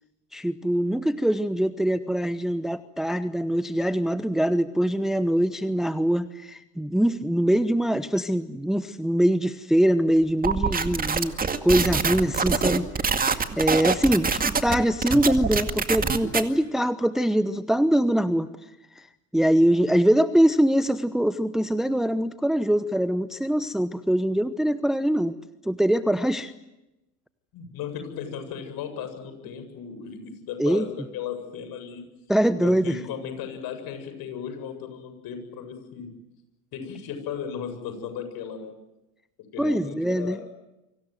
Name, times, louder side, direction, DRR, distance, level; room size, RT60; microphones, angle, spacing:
voice 1, 0.3-11.4 11.6-19.1 19.3-25.4 25.6-26.5 30.6-30.9 32.3-33.0 39.6-40.4, right 1 dB, ahead, 13 dB, 0.9 m, -23 dB
sound 1, 10.4-16.4, right 5 dB, 20° right, 2.2 m, -25 dB
voice 2, 27.5-30.9 31.1-32.0 32.6-36.1 36.7-38.7 39.5-40.5, left 7 dB, 50° left, 8 dB, 7.9 m, -36 dB
29.5 x 25.0 x 7.9 m, 0.93 s
hypercardioid pair, 80°, 47 cm